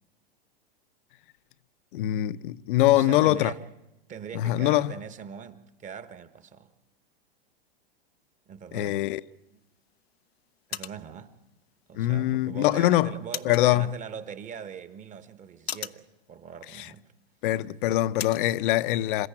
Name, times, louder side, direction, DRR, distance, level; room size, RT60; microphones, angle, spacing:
voice 1, 1.9-3.5 4.3-4.9 8.7-9.2 11.9-13.1 13.4-13.9 16.8-16.9 17.4-19.3, left 15 dB, 60° left, 0.8 m, -23 dB
voice 2, 2.9-3.7 4.1-6.7 8.5-9.0 10.7-11.4 11.9-17.1, right 7 dB, 25° right, 1.4 m, -41 dB
sound 1, 9.1-18.5, left 10 dB, 90° left, 0.8 m, -44 dB
27.5 x 14.0 x 9.0 m
hypercardioid pair, 120°, 30 cm